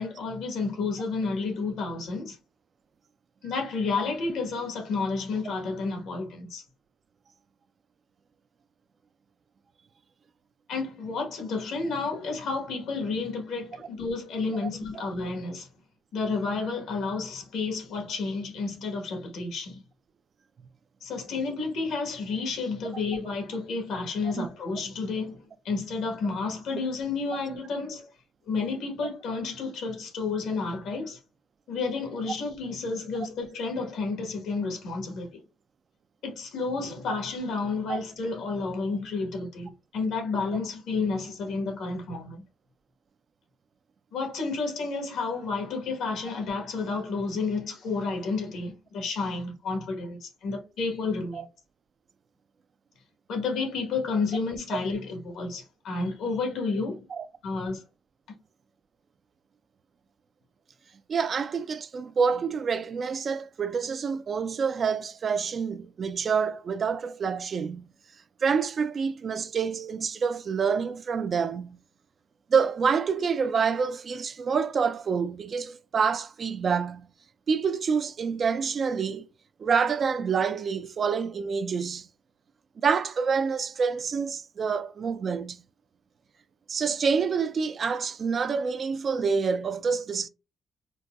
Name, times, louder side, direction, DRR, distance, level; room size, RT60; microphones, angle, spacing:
voice 1, 0.0-2.4 3.4-6.6 10.7-15.7 16.1-19.8 21.0-28.1 28.5-31.2 31.7-35.4 36.2-42.4 44.1-51.4 53.3-57.0 57.4-57.8, left 4 dB, 80° left, 1.3 m, -31 dB
voice 2, 61.1-67.9 68.4-71.8 72.5-77.1 77.5-79.3 79.6-82.1 82.8-85.6 86.7-90.3, right 6 dB, 50° right, 0.3 m, -27 dB
3.9 x 2.2 x 2.3 m
cardioid pair, 90°, 0 cm